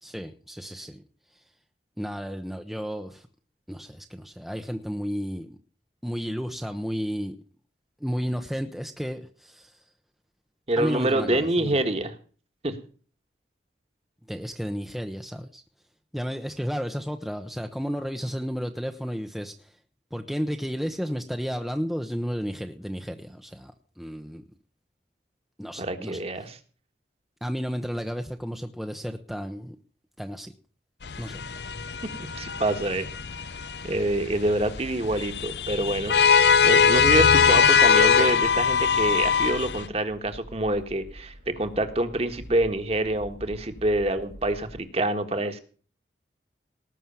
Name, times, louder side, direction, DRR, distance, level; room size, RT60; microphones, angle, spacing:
voice 1, 0.0-1.0 2.0-3.3 3.7-5.6 6.0-7.4 8.0-9.8 10.8-11.8 14.3-15.6 16.1-19.8 20.1-24.4 25.6-26.2 27.4-29.8 30.2-30.5 31.2-31.4 37.5-37.8, equal, ahead, 5 dB, 0.8 m, -32 dB
voice 2, 10.7-12.1 12.6-12.7 25.8-26.6 32.2-33.1 33.8-45.6, right 1 dB, 35° right, 7 dB, 1.5 m, -26 dB
sound 1, 31.0-39.9, left 6 dB, 70° left, 0.7 m, -22 dB
Accelerating revving vroom, 34.3-44.8, equal, 85° right, 5.1 m, -47 dB
18.5 x 6.3 x 7.0 m, 0.41 s
head